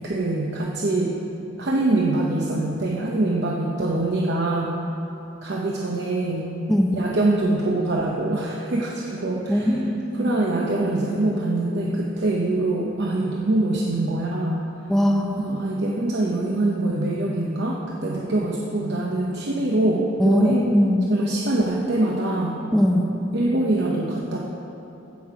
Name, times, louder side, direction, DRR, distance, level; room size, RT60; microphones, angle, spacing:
voice 1, 0.0-1.1 1.6-4.8 5.4-6.5 6.9-9.8 10.1-14.6 15.4-20.8 21.1-22.6 23.3-24.4, right 2 dB, 60° right, -2 dB, 0.8 m, -24 dB
voice 2, 9.5-10.3 14.9-15.4 20.2-21.0 22.7-23.1, equal, ahead, -1 dB, 0.6 m, -20 dB
15.5 x 5.9 x 4.8 m, 2.9 s
head